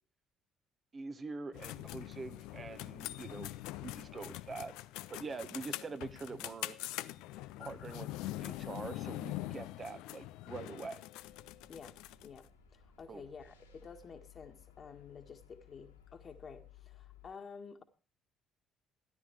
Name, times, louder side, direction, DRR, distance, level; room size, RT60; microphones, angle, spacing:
voice 1, 0.9-3.5 3.8-4.7 5.1-6.8 7.6-11.0 13.1-13.2, right 4 dB, 35° right, 1.5 m, -44 dB
sound 1, 1.5-12.4, left 16 dB, 70° left, 0.5 m, -43 dB
sound 2, 11.2-17.3, left 8 dB, 90° left, 2.5 m, -60 dB
voice 2, 12.2-17.8, left 5 dB, 45° left, 1.7 m, -51 dB
14.0 x 11.5 x 4.6 m
hypercardioid pair, 50°, 0 cm